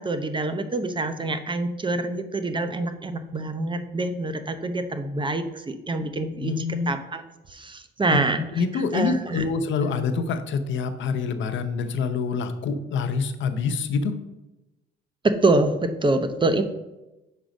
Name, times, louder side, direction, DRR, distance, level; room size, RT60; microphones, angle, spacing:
voice 1, 0.0-7.2 7.5-8.4 8.7-9.4 15.2-16.6, right 2 dB, 25° right, 9 dB, 0.7 m, -26 dB
voice 2, 6.4-6.9 8.1-8.2 8.5-14.2, left 5 dB, 70° left, 8 dB, 0.8 m, -26 dB
6.3 x 4.9 x 5.2 m, 1.0 s
cardioid pair, 90°, 20 cm